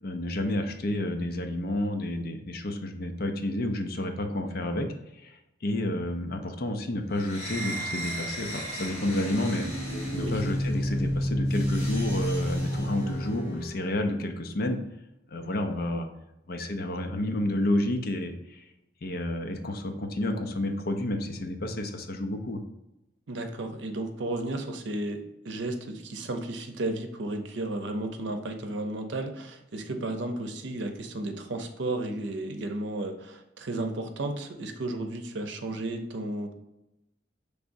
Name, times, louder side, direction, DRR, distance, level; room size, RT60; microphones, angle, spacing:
voice 1, 0.0-4.9 5.2-9.7 10.1-14.8 15.3-16.1 16.5-18.6 19.0-22.6, left 1 dB, 55° left, 5 dB, 0.5 m, -30 dB
sound 1, 7.2-13.8, equal, 35° left, 1.5 m, -30 dB
voice 2, 23.3-36.5, right 2 dB, 80° right, 5 dB, 0.7 m, -33 dB
6.0 x 3.4 x 2.6 m, 0.91 s
head